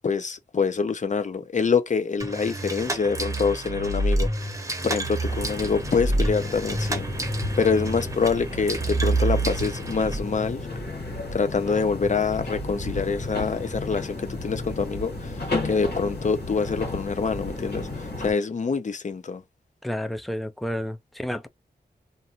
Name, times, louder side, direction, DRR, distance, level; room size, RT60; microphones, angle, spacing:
voice 1, 0.0-4.3 4.8-7.1 7.6-10.6 11.3-15.3 15.6-17.9 18.2-19.4, left 5 dB, 45° left, 0.6 m, -25 dB
sound 1, 2.2-10.2, right 2 dB, 20° right, 0.8 m, -28 dB
sound 2, 5.2-18.3, left 2 dB, 85° left, 1.3 m, -33 dB
voice 2, 19.8-21.5, equal, ahead, 0.4 m, -30 dB
2.6 x 2.5 x 2.8 m
wide cardioid pair, 100°, 17 cm